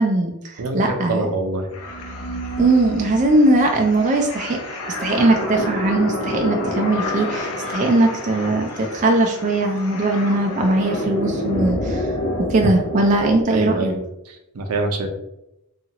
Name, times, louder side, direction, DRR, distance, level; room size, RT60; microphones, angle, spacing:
voice 1, 0.0-1.3 2.6-4.6 5.0-12.1 12.4-13.9, right 2 dB, 35° right, 2 dB, 0.3 m, -19 dB
voice 2, 0.6-1.7 13.5-14.0 14.5-15.1, right 2 dB, 80° right, 3 dB, 0.6 m, -24 dB
sound 1, 1.7-13.4, left 1 dB, 75° left, 0.6 m, -28 dB
2.8 x 2.4 x 2.8 m, 0.88 s
head